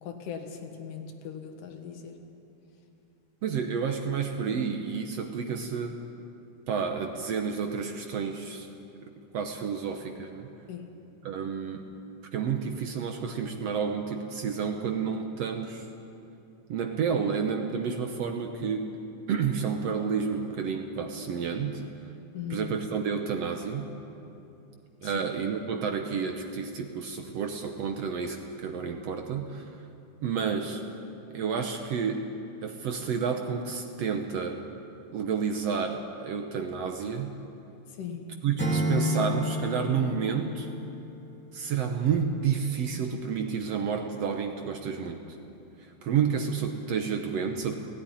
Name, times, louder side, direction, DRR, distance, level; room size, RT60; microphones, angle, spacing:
voice 1, 0.0-2.2 4.5-4.6 10.7-10.8 22.3-22.7 25.0-25.2 37.9-38.3, left 7 dB, 85° left, 4 dB, 3.2 m, -39 dB
voice 2, 3.4-6.0 6.7-8.7 9.3-10.5 11.2-11.8 12.3-15.8 16.7-18.9 19.3-21.8 22.5-23.9 25.0-29.7 30.2-30.8 31.3-32.2 32.6-34.6 35.1-37.3 38.4-40.7 41.5-45.4 45.8-47.7, right 6 dB, 65° right, 4 dB, 1.9 m, -30 dB
Acoustic guitar / Strum, 38.6-41.6, left 1 dB, 5° left, 1.8 m, -31 dB
17.5 x 16.5 x 10.0 m, 2.8 s
omnidirectional pair, 3.7 m